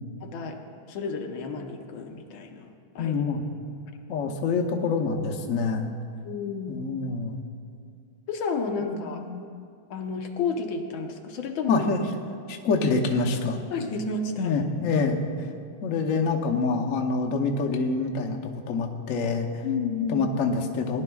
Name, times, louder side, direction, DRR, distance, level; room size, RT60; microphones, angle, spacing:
voice 1, 0.2-0.6 0.9-2.7 2.9-3.2 6.2-6.9 8.3-9.2 9.9-11.9 13.7-14.5 19.6-20.3, left 4 dB, 90° left, 3 dB, 1.7 m, -31 dB
voice 2, 3.0-3.5 4.1-5.9 6.7-7.4 8.8-9.4 11.7-12.0 12.5-13.6 14.4-15.2 15.8-18.4 18.7-19.6 20.1-21.0, left 4 dB, 55° left, 1 dB, 1.0 m, -26 dB
18.5 x 11.0 x 2.3 m, 2.4 s
omnidirectional pair, 2.1 m